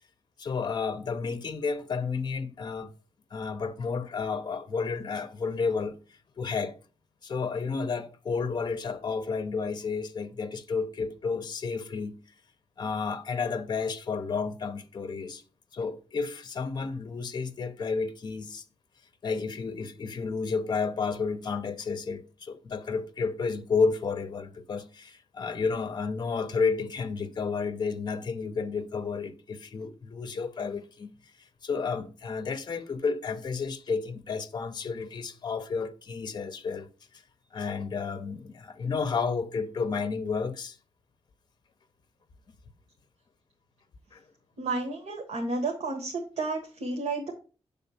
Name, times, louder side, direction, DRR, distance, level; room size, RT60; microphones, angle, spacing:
voice 1, 0.4-2.9 3.3-6.0 6.4-6.7 7.2-12.2 12.8-15.4 15.7-18.6 19.2-31.1 31.6-36.9 37.5-40.8 44.1-44.2, left 5 dB, 40° left, 0.7 m, -31 dB
voice 2, 44.6-47.3, right 3 dB, 85° right, 1.4 m, -31 dB
7.1 x 3.5 x 5.6 m
wide cardioid pair, 170°, 11 cm